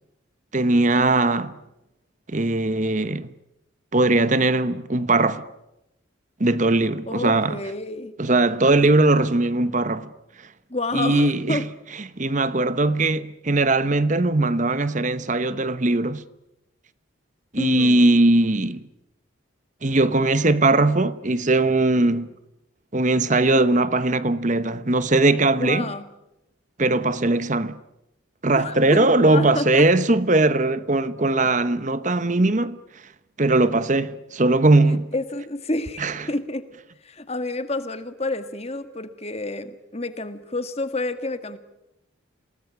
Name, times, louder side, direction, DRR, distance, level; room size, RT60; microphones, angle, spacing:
voice 1, 0.5-1.6 2.3-3.3 3.9-5.4 6.4-7.6 8.2-10.1 10.9-11.7 12.0-16.2 17.5-18.8 19.8-22.3 22.9-25.9 26.8-27.8 28.4-32.8 33.4-35.1 36.0-36.3, right 2 dB, 35° right, 1.0 m, -20 dB
voice 2, 7.1-8.1 10.7-11.7 17.6-18.1 25.6-26.0 28.6-29.8 35.1-36.0 36.3-36.7 37.0-41.6, left 2 dB, 30° left, 1.8 m, -29 dB
27.5 x 19.0 x 9.9 m
head